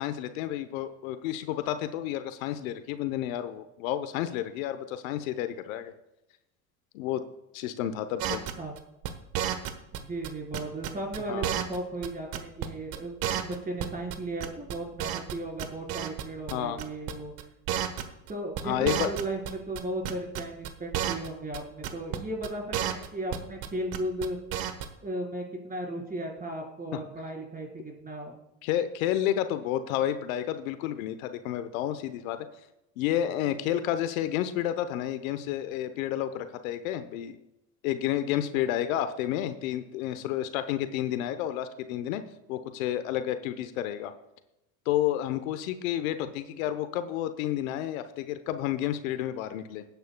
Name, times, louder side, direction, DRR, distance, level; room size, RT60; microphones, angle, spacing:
voice 1, 0.0-5.9 6.9-7.2 7.5-8.4 11.3-11.5 16.5-16.8 18.6-19.1 26.9-27.0 28.6-32.5 33.0-37.4 37.8-42.2 42.5-44.1 44.9-49.8, left 12 dB, 75° left, 11 dB, 0.9 m, -30 dB
sound 1, 8.2-10.0 10.2-11.8 12.0-12.1 12.3-12.7 12.9-13.0 13.2-14.1 14.4-15.3 15.6-16.2 16.5-16.6 16.8-17.1 17.4-17.5 17.7-18.3 18.6-19.8 20.0-21.3 21.5-21.6 21.8-22.2 22.4-23.7 23.9-24.3 24.5-24.9, right 10 dB, 55° right, 1.3 m, -31 dB
voice 2, 9.9-17.3 18.3-24.4 25.0-28.4, right 1 dB, 20° right, 0 dB, 4.0 m, -35 dB
19.0 x 9.4 x 2.2 m, 0.90 s
hypercardioid pair, 90°, 42 cm